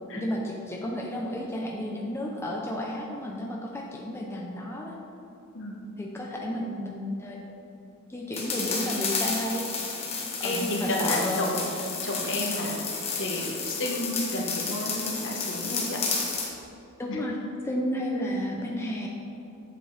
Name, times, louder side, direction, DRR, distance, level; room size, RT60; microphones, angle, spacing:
voice 1, 0.1-4.9 6.0-7.4 8.1-9.6 10.4-11.4 17.0-17.4 17.6-19.1, equal, 10° left, -2 dB, 0.6 m, -32 dB
sound 1, 8.3-16.5, left 4 dB, 30° left, 1.1 m, -31 dB
voice 2, 10.4-11.7 12.0-12.8 13.2-16.0 17.1-17.2, left 1 dB, 60° left, -1 dB, 1.3 m, -31 dB
8.2 x 7.5 x 3.4 m, 2.7 s
head